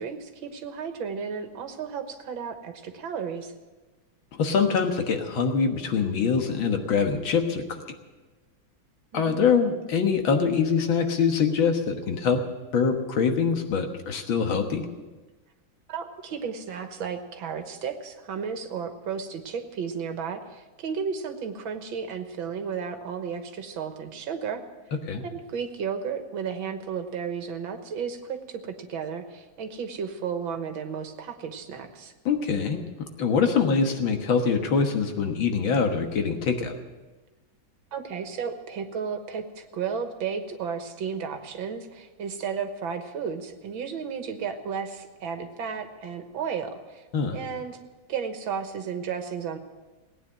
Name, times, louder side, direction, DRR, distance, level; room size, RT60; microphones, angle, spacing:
voice 1, 0.0-3.5 9.1-9.4 15.9-24.6 25.3-32.1 37.9-47.1 47.3-47.8 48.1-49.6, right 6 dB, 85° right, 7 dB, 2.0 m, -33 dB
voice 2, 4.4-7.8 9.1-12.4 12.7-14.9 25.1-25.2 32.3-32.8 33.2-36.7 47.1-47.4, left 5 dB, 80° left, 5 dB, 2.1 m, -24 dB
18.0 x 9.4 x 7.4 m, 1.2 s
omnidirectional pair, 2.1 m